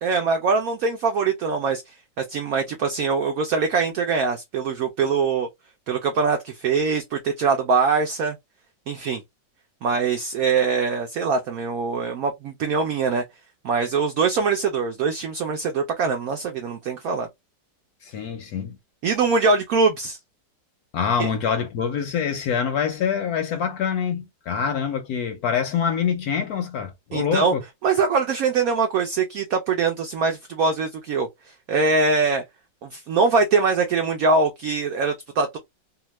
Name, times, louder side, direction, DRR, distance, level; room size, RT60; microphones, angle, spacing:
voice 1, 0.0-5.5 5.9-8.4 8.9-9.2 9.8-13.2 13.6-17.3 19.0-20.2 21.2-21.3 27.1-27.5 27.8-32.4 32.8-35.6, right 4 dB, 70° right, 0.8 m, -23 dB
voice 2, 18.0-18.8 20.9-27.6, left 7 dB, 70° left, 0.9 m, -25 dB
2.8 x 2.4 x 3.0 m
omnidirectional pair, 2.0 m